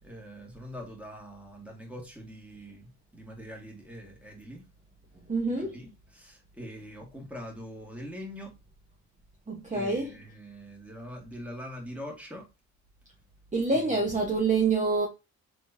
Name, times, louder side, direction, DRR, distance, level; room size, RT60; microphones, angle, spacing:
voice 1, 0.0-4.7 5.5-8.5 9.7-12.5 13.7-14.0, equal, 5° right, 2.1 m, -43 dB
voice 2, 5.3-5.8 9.5-10.1 13.5-15.1, right 3 dB, 25° right, 1.3 m, -26 dB
4.4 x 3.8 x 2.7 m
cardioid pair, 90°, 30 cm